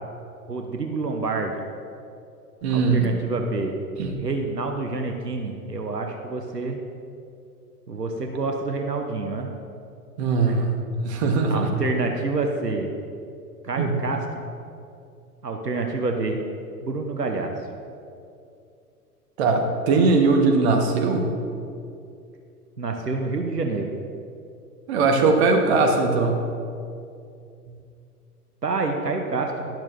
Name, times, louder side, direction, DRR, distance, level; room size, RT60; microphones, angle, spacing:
voice 1, 0.5-1.6 2.7-3.8 4.2-6.8 7.9-9.5 10.5-10.6 11.5-12.9 13.6-14.5 15.4-16.4 16.8-17.5 22.8-23.9 28.6-29.7, right 3 dB, 85° right, 3 dB, 0.9 m, -27 dB
voice 2, 2.6-3.1 4.0-4.2 10.2-10.7 11.0-11.7 13.8-14.0 19.4-21.3 24.9-26.5, right 3 dB, 45° right, 3 dB, 1.3 m, -20 dB
11.5 x 11.0 x 2.6 m, 2.5 s
figure-of-eight pair, 100°, 47 cm